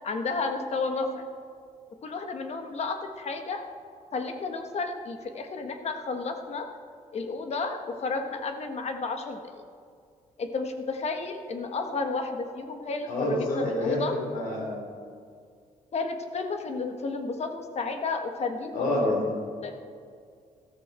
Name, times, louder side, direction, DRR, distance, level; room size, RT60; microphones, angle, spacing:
voice 1, 0.0-1.2 2.0-3.7 4.1-6.7 7.1-9.6 10.4-14.2 15.9-18.9 19.6-19.8, left 4 dB, 50° left, 6 dB, 1.4 m, -32 dB
voice 2, 13.1-14.8 18.7-19.3, left 1 dB, 85° left, -1 dB, 3.9 m, -28 dB
14.0 x 13.5 x 4.4 m, 2.2 s
cardioid pair, 105°, 14 cm